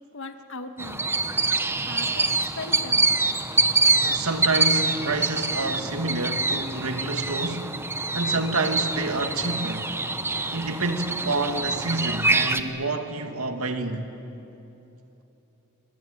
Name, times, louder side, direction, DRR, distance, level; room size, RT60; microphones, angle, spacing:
voice 1, 0.1-1.1 1.8-3.1, left 2 dB, 65° left, 1.8 m, -38 dB
sound 1, 0.8-12.6, right 3 dB, 10° right, 1.0 m, -25 dB
voice 2, 4.0-7.8 8.1-9.9 10.5-14.1, right 2 dB, 85° right, 2.2 m, -28 dB
29.0 x 22.0 x 8.9 m
head